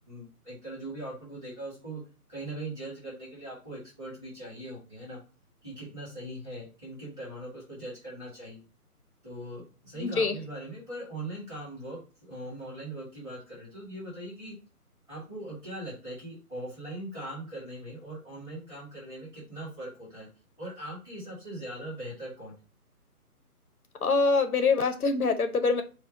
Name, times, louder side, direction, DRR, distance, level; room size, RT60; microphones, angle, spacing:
voice 1, 0.1-2.0 2.3-5.2 5.6-8.6 9.2-14.5 15.1-20.3 20.6-22.6, right 1 dB, 5° right, -8 dB, 1.2 m, -40 dB
voice 2, 10.0-10.4 24.0-25.8, left 4 dB, 70° left, 8 dB, 0.8 m, -24 dB
4.4 x 2.3 x 4.6 m, 0.34 s
hypercardioid pair, 160°, 46 cm